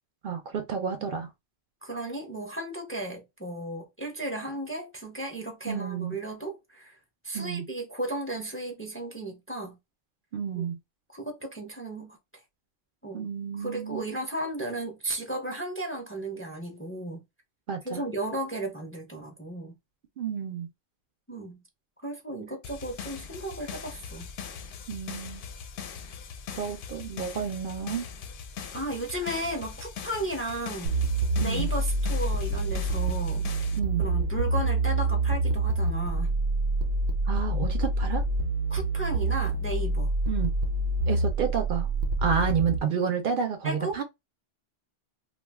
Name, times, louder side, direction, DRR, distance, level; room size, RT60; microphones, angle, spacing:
voice 1, 0.2-1.3 5.7-6.1 7.3-7.7 10.3-10.8 13.1-14.0 17.7-18.0 20.2-20.7 24.9-25.4 26.6-28.1 31.4-31.7 33.7-34.0 37.3-38.2 40.3-40.6 41.1-41.9 42.2-44.0, right 7 dB, 60° right, 0.7 m, -30 dB
voice 2, 1.8-7.0 7.2-9.8 10.5-10.7 11.1-12.2 13.0-13.3 13.6-17.2 17.8-19.7 21.3-21.6 22.0-24.3 28.7-30.9 31.4-33.5 34.0-36.4 38.7-40.1 43.6-44.0, right 1 dB, 15° left, 0.6 m, -34 dB
sound 1, 22.6-33.8, left 6 dB, 65° left, 0.7 m, -41 dB
sound 2, 30.9-42.8, right 2 dB, 85° right, 1.0 m, -27 dB
2.5 x 2.2 x 3.4 m
omnidirectional pair, 1.1 m